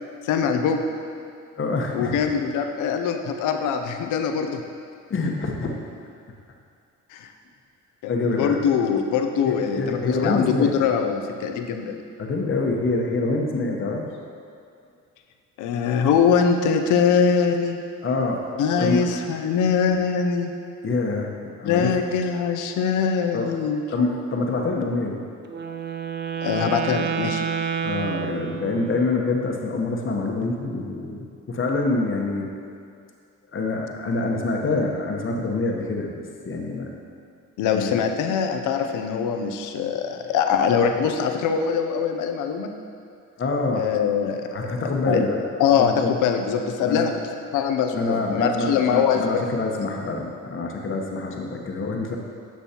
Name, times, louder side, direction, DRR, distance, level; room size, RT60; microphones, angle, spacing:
voice 1, 0.2-0.8 1.9-4.6 7.1-7.3 8.0-12.0 15.6-17.8 18.6-20.5 21.6-23.8 26.4-27.4 37.6-42.7 43.7-44.5 45.1-45.2 45.6-47.1 47.5-49.6, left 6 dB, 90° left, 5 dB, 0.6 m, -23 dB
voice 2, 1.6-2.2 5.1-5.7 8.1-8.7 9.4-10.8 12.2-14.1 18.0-18.4 18.8-19.1 20.8-21.3 21.6-22.0 23.3-23.5 23.9-25.2 27.8-32.5 33.5-36.1 36.4-36.9 37.7-38.0 43.4-43.9 44.5-45.4 45.8-46.1 46.8-47.1 47.9-52.2, left 3 dB, 40° left, 1 dB, 1.1 m, -26 dB
Wind instrument woodwind instrument, 25.4-29.1, right 7 dB, 35° right, 0.5 m, -29 dB
10.5 x 6.1 x 2.9 m, 2.3 s
cardioid pair, 90°, 30 cm